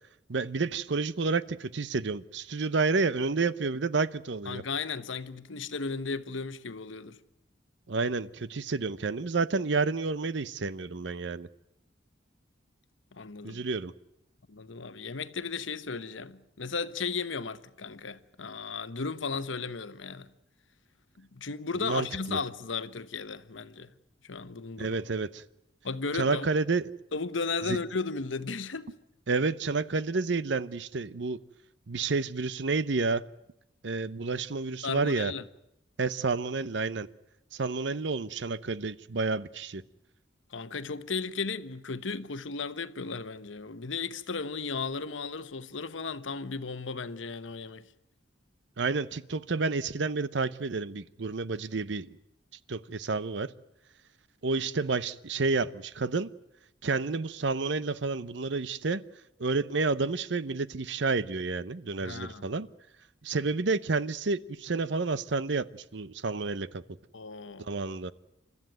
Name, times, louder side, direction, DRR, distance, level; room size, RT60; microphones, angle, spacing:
voice 1, 0.3-4.6 7.9-11.5 13.4-13.9 21.8-22.4 24.8-25.4 26.1-26.9 27.7-27.8 29.3-31.4 31.9-33.2 33.8-35.3 36.0-37.1 37.5-39.8 48.8-52.1 52.7-53.5 54.4-56.3 56.8-59.0 59.4-62.7 63.2-65.7 65.9-66.8 67.7-68.1, right 4 dB, 70° right, 0.7 m, -30 dB
voice 2, 4.5-7.2 13.1-13.6 14.5-20.3 21.2-23.9 24.2-25.0 25.8-26.5 27.1-28.9 34.8-35.4 40.5-47.8 62.0-62.5 67.1-67.7, left 4 dB, 90° left, 1.0 m, -35 dB
29.0 x 13.5 x 9.2 m
head